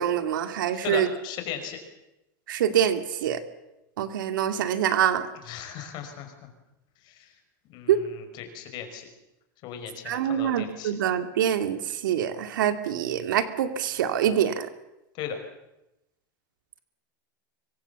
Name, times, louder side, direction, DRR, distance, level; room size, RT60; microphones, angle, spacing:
voice 1, 0.0-1.1 2.5-3.4 4.0-5.3 7.9-8.0 10.0-14.7, right 9 dB, 90° right, 9 dB, 2.4 m, -25 dB
voice 2, 0.8-1.8 5.5-6.5 7.1-7.3 7.7-9.1 9.6-11.0 15.2-15.4, left 8 dB, 45° left, 6 dB, 5.5 m, -37 dB
25.5 x 24.0 x 7.1 m, 0.93 s
supercardioid pair, 140°, 10 cm